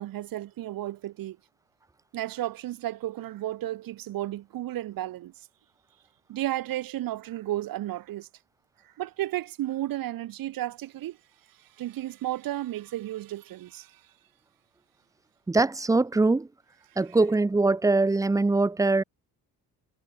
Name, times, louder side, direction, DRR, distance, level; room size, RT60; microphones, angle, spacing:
voice 1, 0.0-1.4 2.1-5.3 6.3-8.3 9.0-11.2 11.8-13.9, right 14 dB, 70° right, 0.8 m, -33 dB
voice 2, 15.5-16.5 17.0-19.0, right 3 dB, 10° right, 0.6 m, -22 dB
cardioid pair, 135°, 36 cm